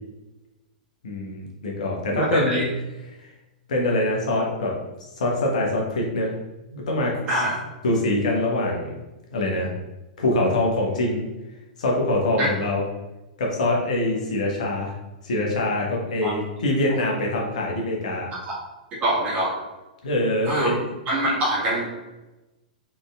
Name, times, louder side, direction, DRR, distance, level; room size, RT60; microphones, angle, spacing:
voice 1, 1.0-2.7 3.7-4.7 5.1-6.3 6.7-7.4 7.8-9.0 9.3-9.7 10.2-11.3 11.8-12.9 13.4-14.9 15.2-18.3 20.0-20.8, left 1 dB, 60° left, -1 dB, 0.9 m, -24 dB
voice 2, 2.1-2.6 7.3-7.6 12.4-12.5 16.2-16.3 18.5-18.6 19.0-19.5 20.5-20.7 21.1-21.8, right 1 dB, 30° right, -5 dB, 1.5 m, -24 dB
4.0 x 3.3 x 2.3 m, 1.1 s
figure-of-eight pair, 105°, 4 cm